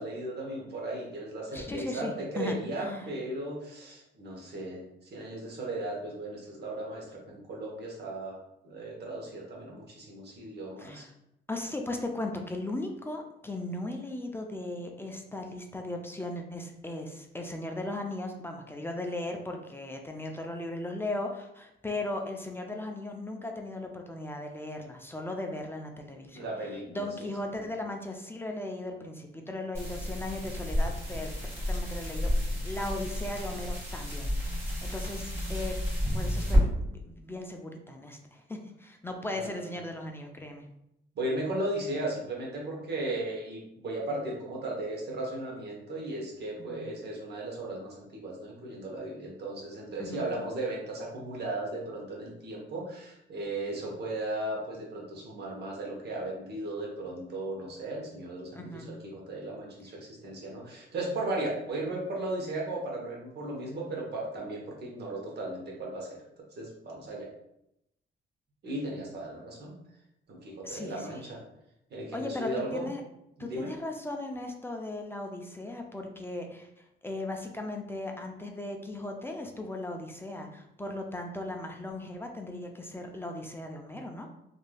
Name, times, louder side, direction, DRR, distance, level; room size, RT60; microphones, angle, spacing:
voice 1, 0.0-8.4 8.6-11.1 26.3-27.1 27.5-27.7 39.3-39.8 41.1-66.2 66.6-67.3 68.6-69.7 70.3-71.4 71.9-72.9 73.4-73.7, right 2 dB, 55° right, -1 dB, 1.0 m, -36 dB
voice 2, 1.5-3.1 10.8-11.1 11.5-26.5 26.9-31.3 31.7-35.8 36.1-40.7 46.6-46.8 50.0-50.2 58.6-58.9 70.6-71.2 72.1-73.0 73.4-76.7 77.0-84.3, left 2 dB, 10° left, 3 dB, 0.4 m, -37 dB
sound 1, 29.7-36.6, equal, 15° right, 1.3 m, -30 dB
3.1 x 2.6 x 2.2 m, 0.81 s
cardioid pair, 90°, 20 cm